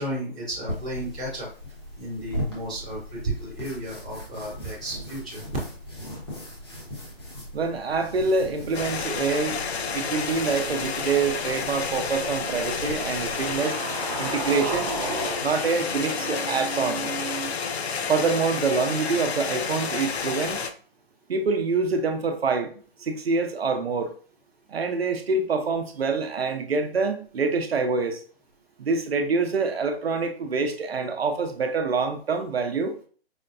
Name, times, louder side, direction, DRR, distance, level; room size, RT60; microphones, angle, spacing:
voice 1, 0.0-1.5 2.0-5.4, right 1 dB, 10° left, 0.5 m, -33 dB
sound 1, 0.7-13.6, equal, 25° left, 1.0 m, -39 dB
voice 2, 7.5-9.6 9.9-13.8 14.2-14.9 15.4-17.1 18.1-20.6 21.3-22.7 23.0-24.1 24.7-28.2 28.8-33.0, right 4 dB, 75° right, 0.8 m, -26 dB
sound 2, 8.7-20.7, left 5 dB, 85° left, 0.6 m, -30 dB
sound 3, 13.1-17.5, right 4 dB, 35° right, 0.9 m, -34 dB
5.1 x 2.2 x 2.5 m
hypercardioid pair, 175°, 31 cm